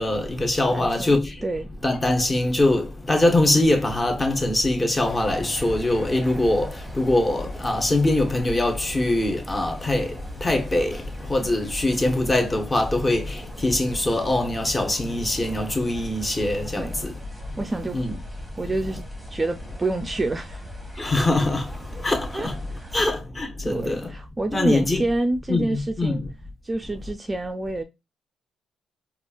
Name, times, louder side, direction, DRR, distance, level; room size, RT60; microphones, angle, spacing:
voice 1, 0.0-1.3 1.8-10.1 10.4-17.1 17.9-18.2 21.0-21.7 22.0-22.6 22.9-24.1 24.5-25.0 25.5-26.3, left 2 dB, 20° left, 0.8 m, -23 dB
voice 2, 0.7-1.7 16.8-17.0 17.6-18.0 18.6-19.0 19.3-20.6 22.3-22.9 23.6-26.2 26.6-27.8, right 2 dB, 20° right, 0.4 m, -28 dB
sound 1, 5.0-23.1, left 1 dB, 5° left, 1.1 m, -39 dB
4.3 x 2.4 x 2.3 m
cardioid pair, 90°, 0 cm